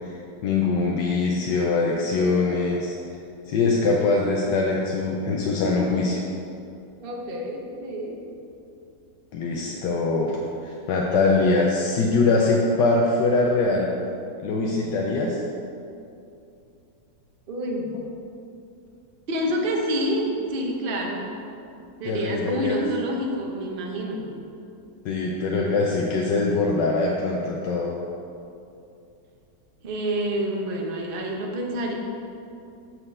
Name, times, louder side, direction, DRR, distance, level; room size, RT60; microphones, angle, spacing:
voice 1, 0.0-2.9 3.5-6.2 9.3-13.9 14.4-15.4 22.0-22.8 25.0-27.9, left 3 dB, 85° left, -2 dB, 1.4 m, -23 dB
voice 2, 7.0-8.2 17.5-17.9 19.3-21.3 22.0-24.3 29.8-31.9, equal, 40° right, 0 dB, 1.0 m, -28 dB
7.4 x 4.9 x 6.3 m, 2.6 s
omnidirectional pair, 1.8 m